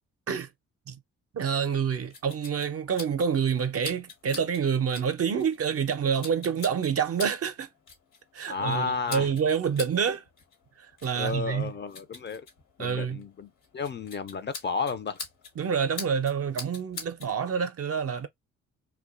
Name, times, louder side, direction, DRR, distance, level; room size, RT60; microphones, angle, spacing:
voice 1, 1.3-7.7 8.3-10.2 11.0-11.7 12.8-13.2 15.6-18.3, right 7 dB, 45° right, 0.5 m, -27 dB
sound 1, 1.6-17.3, left 4 dB, 80° left, 1.2 m, -45 dB
voice 2, 8.5-9.3 11.1-12.5 12.8-15.2, left 5 dB, 35° left, 0.4 m, -32 dB
2.5 x 2.2 x 2.4 m
hypercardioid pair, 45°, 34 cm